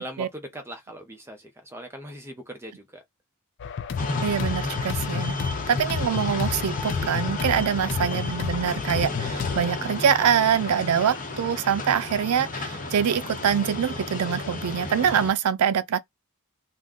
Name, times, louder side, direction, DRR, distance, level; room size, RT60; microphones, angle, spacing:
voice 1, 0.0-3.0 7.5-7.8, right 1 dB, 10° right, 0.6 m, -40 dB
sound 1, 3.6-9.6, left 6 dB, 55° left, 0.4 m, -31 dB
sound 2, 4.0-15.3, left 3 dB, 40° left, 0.8 m, -32 dB
voice 2, 4.2-5.4 5.7-16.0, right 8 dB, 90° right, 0.4 m, -24 dB
2.4 x 2.1 x 3.6 m
head